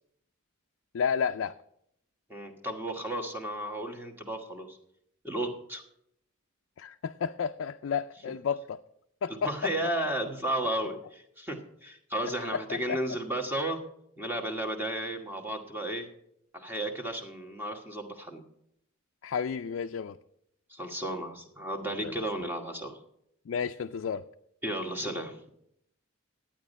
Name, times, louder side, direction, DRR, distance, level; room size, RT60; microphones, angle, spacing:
voice 1, 0.9-1.5 6.8-8.8 9.2-9.7 12.5-13.0 19.2-20.2 21.9-22.1 23.5-24.2, left 6 dB, 65° left, 7 dB, 0.4 m, -31 dB
voice 2, 2.3-4.8 5.2-5.8 9.4-13.8 14.2-16.1 16.5-18.4 20.7-23.0 24.6-25.4, right 1 dB, 10° right, 4 dB, 1.3 m, -33 dB
11.5 x 9.0 x 5.3 m, 0.74 s
head